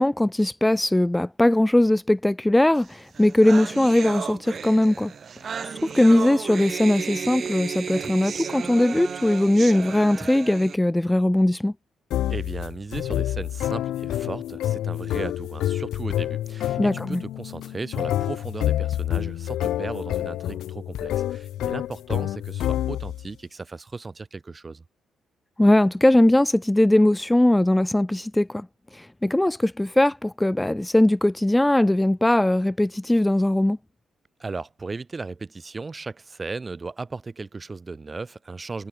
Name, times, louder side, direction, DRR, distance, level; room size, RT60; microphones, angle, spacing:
voice 1, 0.0-5.1 5.6-11.7 16.8-17.2 25.6-28.7 28.9-33.8, left 1 dB, 10° left, 0.7 m, -20 dB
sound 1, 2.9-3.0 3.1-10.7, right 6 dB, 45° right, 1.7 m, -33 dB
sound 2, 12.1-23.3, left 13 dB, 80° left, 0.9 m, -28 dB
voice 2, 12.3-24.8 34.4-38.9, right 3 dB, 25° right, 2.6 m, -36 dB
cardioid pair, 90°, 0 cm